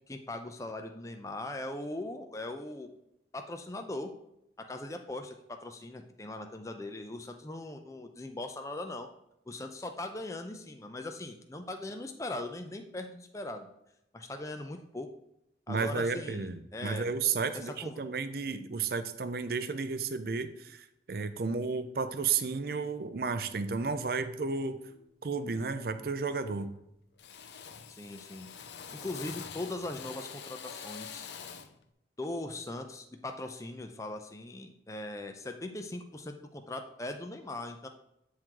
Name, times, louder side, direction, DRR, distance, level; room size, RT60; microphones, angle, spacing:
voice 1, 0.1-2.9 3.3-4.1 4.6-9.1 9.5-13.7 14.1-15.1 15.7-17.1 17.5-18.0 27.9-28.5 28.9-31.3 32.2-37.9, left 2 dB, 15° left, 5 dB, 0.5 m, -40 dB
voice 2, 15.7-24.8 25.2-26.7, right 5 dB, 55° right, 11 dB, 0.5 m, -32 dB
Drill, 24.9-25.1 25.5-26.0 26.3-26.8 27.2-31.8, left 7 dB, 75° left, 0.5 m, -46 dB
8.9 x 3.7 x 4.6 m, 0.81 s
head